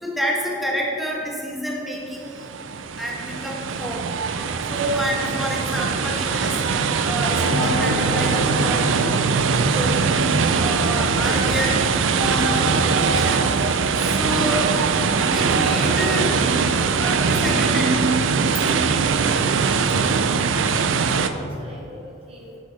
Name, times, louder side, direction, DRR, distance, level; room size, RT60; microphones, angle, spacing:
voice 1, 0.0-2.5 3.0-4.0 4.6-8.8 9.5-10.0 10.6-13.4 14.0-14.6 15.2-16.3 17.0-17.9, equal, ahead, -3 dB, 1.4 m, -28 dB
sound 1, 2.3-21.3, right 5 dB, 75° right, 0.5 m, -21 dB
sound 2, 7.3-12.1, left 3 dB, 75° left, 0.5 m, -32 dB
voice 2, 20.5-22.6, right 1 dB, 30° right, -2 dB, 0.9 m, -41 dB
10.0 x 6.3 x 4.1 m, 2.5 s
head